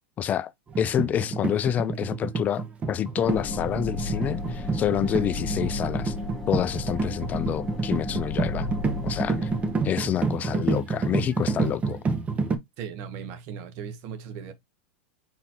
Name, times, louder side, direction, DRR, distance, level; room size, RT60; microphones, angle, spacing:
voice 1, 0.2-0.5 0.8-6.1 6.5-8.7 9.0-9.5 9.8-12.0, left 10 dB, 30° left, 0.3 m, -28 dB
sound 1, 0.7-12.6, right 4 dB, 25° right, 0.8 m, -29 dB
sound 2, 3.2-9.8, left 2 dB, 10° left, 1.1 m, -33 dB
voice 2, 12.8-14.5, right 7 dB, 50° right, 1.0 m, -37 dB
4.2 x 4.1 x 2.8 m
hypercardioid pair, 115°, 6 cm